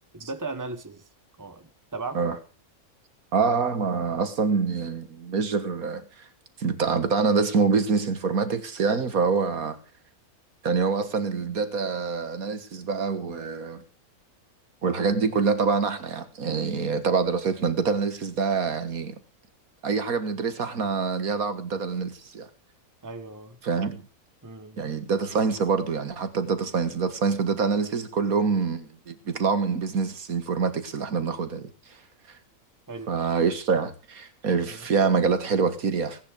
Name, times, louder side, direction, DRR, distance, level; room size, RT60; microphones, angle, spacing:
voice 1, 0.1-1.0 1.4-2.4 23.0-23.6 24.4-24.9 32.9-33.1 34.7-34.8, right 3 dB, 15° right, 1.4 m, -37 dB
voice 2, 3.3-6.3 6.6-9.8 10.6-13.8 14.8-19.2 19.8-22.5 23.6-24.0 24.8-31.7 32.3-32.4 33.1-36.2, right 5 dB, 75° right, 2.0 m, -25 dB
18.0 x 9.6 x 5.0 m
omnidirectional pair, 1.5 m